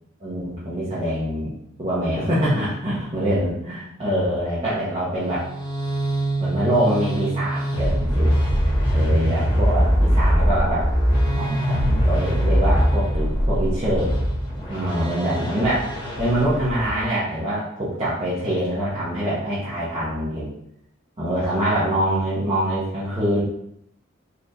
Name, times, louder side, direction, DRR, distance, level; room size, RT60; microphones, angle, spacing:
voice 1, 0.2-1.5 1.8-5.5 6.4-8.3 8.9-10.9 11.4-14.1 14.7-15.9 16.2-20.5 21.2-23.4, right 1 dB, 30° right, -10 dB, 1.0 m, -24 dB
sound 1, 5.2-17.0, equal, 25° left, 1.0 m, -22 dB
4.3 x 3.2 x 2.6 m, 0.74 s
head